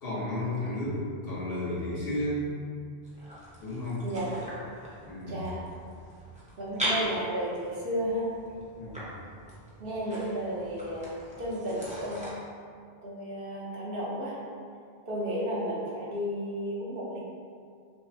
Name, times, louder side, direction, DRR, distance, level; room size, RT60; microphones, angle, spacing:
voice 1, 0.0-2.5 3.6-4.0 5.0-5.4 8.8-9.0, left 1 dB, 70° left, -7 dB, 1.1 m, -32 dB
sound 1, 3.0-12.3, right 1 dB, 10° right, 0.6 m, -39 dB
voice 2, 4.0-4.4 5.3-5.6 6.6-8.3 9.8-12.2 13.0-14.4 15.1-17.2, equal, 65° right, -6 dB, 1.0 m, -33 dB
5.8 x 2.0 x 2.7 m, 2.2 s
omnidirectional pair, 1.0 m